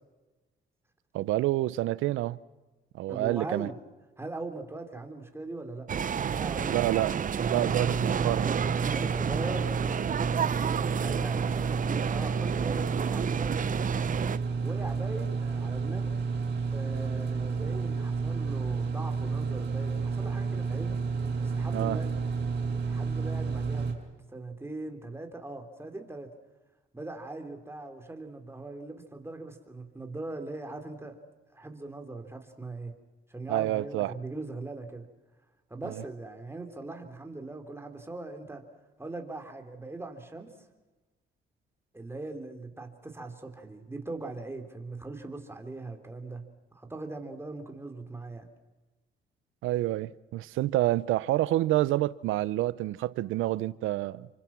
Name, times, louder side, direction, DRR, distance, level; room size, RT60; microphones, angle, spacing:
voice 1, 1.1-2.4 2.9-3.7 6.7-7.1 7.4-8.5 21.7-22.0 33.5-34.1 35.8-36.0 49.6-54.3, right 16 dB, 90° right, 0.8 m, -28 dB
voice 2, 3.1-3.7 4.2-5.9 6.1-6.8 8.9-10.3 11.0-13.9 14.6-16.2 16.7-21.0 21.4-22.1 22.7-24.0 24.3-26.3 26.9-31.2 31.5-32.9 33.3-35.1 35.7-38.6 39.0-40.5 41.9-46.5 46.7-48.5, right 2 dB, 10° right, 3.9 m, -40 dB
sound 1, 5.9-14.4, right 7 dB, 40° right, 0.8 m, -31 dB
sound 2, 7.4-23.9, right 4 dB, 60° right, 6.1 m, -31 dB
28.5 x 24.5 x 6.1 m
cardioid pair, 90°, 20 cm